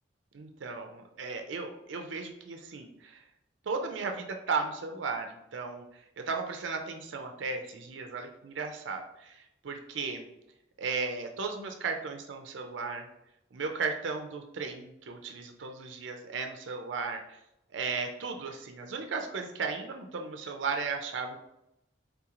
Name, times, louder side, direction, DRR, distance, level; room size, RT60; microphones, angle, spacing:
voice 1, 0.3-3.2 3.7-10.2 10.8-13.1 13.5-17.4 17.7-21.4, right 4 dB, 85° right, 4 dB, 0.5 m, -35 dB
3.6 x 3.0 x 3.6 m, 0.87 s
head